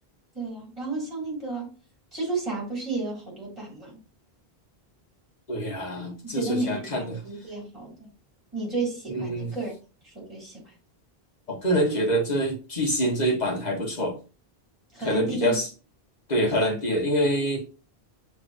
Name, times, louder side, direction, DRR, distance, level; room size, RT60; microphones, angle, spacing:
voice 1, 0.3-1.7 2.1-4.0 6.3-8.1 8.5-9.7 10.0-10.7 14.9-15.6 16.5-16.8, right 3 dB, 30° right, 3.0 m, -32 dB
voice 2, 5.5-7.2 9.1-9.5 11.5-14.2 15.0-15.7 16.3-17.6, equal, 45° left, 1.4 m, -25 dB
6.6 x 3.1 x 2.6 m
omnidirectional pair, 1.0 m